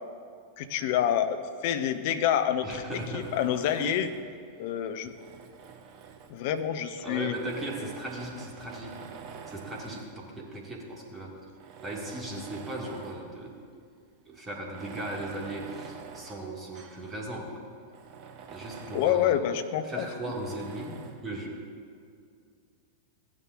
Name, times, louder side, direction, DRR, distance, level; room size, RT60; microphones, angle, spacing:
voice 1, 0.6-2.8 3.1-4.1 4.6-5.1 6.3-7.3 18.9-20.1, left 10 dB, 50° left, 9 dB, 0.6 m, -27 dB
voice 2, 2.6-3.4 7.0-8.9 9.5-11.4 11.8-13.6 14.3-17.6 18.5-19.4 19.8-21.6, right 1 dB, 20° right, -1 dB, 1.8 m, -37 dB
Tools, 3.2-4.3 5.0-6.6 7.3-10.2 10.9-11.0 11.5-13.3 13.7-13.8 14.6-17.1 17.5-17.6 17.9-19.3 20.2-21.3, right 6 dB, 40° right, 0.7 m, -46 dB
15.0 x 9.7 x 2.4 m, 2.3 s
figure-of-eight pair, 90°, 0 cm